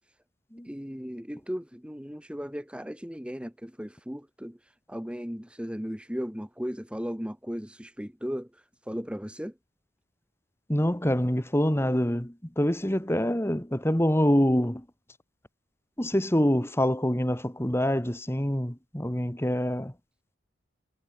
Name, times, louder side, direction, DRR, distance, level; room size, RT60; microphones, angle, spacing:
voice 1, 0.7-4.6 4.9-8.5 8.9-9.5, equal, 5° right, 1.6 m, -36 dB
voice 2, 10.7-14.9 16.0-19.9, equal, 10° left, 1.8 m, -25 dB
head